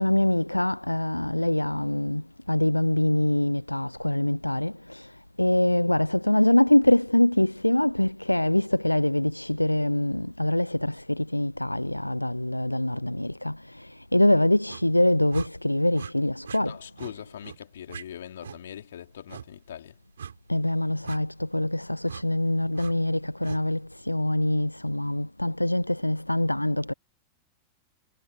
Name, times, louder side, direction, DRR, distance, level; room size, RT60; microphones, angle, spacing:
voice 1, 0.0-2.2 2.5-5.0 5.4-13.5 14.1-16.8 20.5-26.9, left 1 dB, 85° left, 0.8 m, -24 dB
sound 1, 14.7-14.9 15.3-15.5 15.9-16.1 16.4-16.6 17.0-17.1 17.4-17.6 17.9-18.0 18.4-18.6 19.3-19.5 20.2-20.4 21.0-21.2 22.0-22.2 22.7-22.9 23.4-23.6, right 7 dB, 70° right, 6.9 m, -40 dB
voice 2, 16.6-20.0, left 10 dB, 65° left, 3.9 m, -41 dB
figure-of-eight pair, 90°, 0 cm